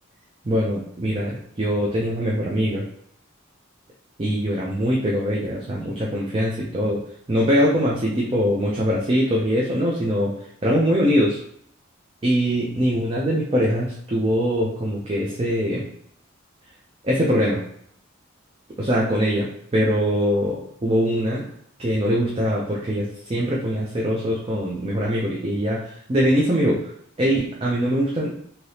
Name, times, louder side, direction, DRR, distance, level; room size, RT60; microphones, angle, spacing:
voice 1, 0.5-2.8 4.2-7.0 7.3-10.3 10.6-11.4 12.2-15.9 17.0-17.6 18.8-21.4 21.8-26.9 27.2-28.3, equal, 25° right, -4 dB, 0.4 m, -22 dB
3.2 x 2.8 x 2.7 m, 0.69 s
head